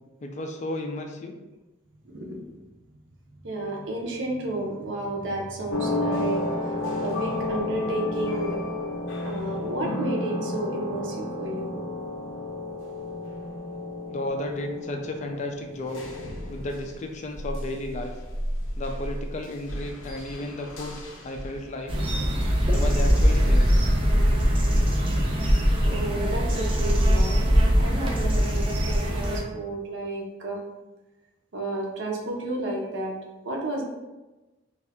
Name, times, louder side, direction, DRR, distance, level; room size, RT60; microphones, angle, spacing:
voice 1, 0.2-1.4 14.1-16.0 16.5-18.1 18.8-21.0 21.2-22.1 22.7-23.7, left 1 dB, 35° left, 3 dB, 0.3 m, -33 dB
voice 2, 2.0-2.4 3.4-6.4 7.0-8.6 9.2-11.8 25.8-27.4 27.8-30.6 31.5-33.1 33.4-33.8, right 2 dB, 65° right, -1 dB, 0.6 m, -31 dB
sound 1, 5.7-17.0 17.3-22.1, left 2 dB, 90° left, 0.6 m, -32 dB
sound 2, 21.9-29.4, equal, 25° right, 0.4 m, -21 dB
2.7 x 2.3 x 3.4 m, 1.1 s
head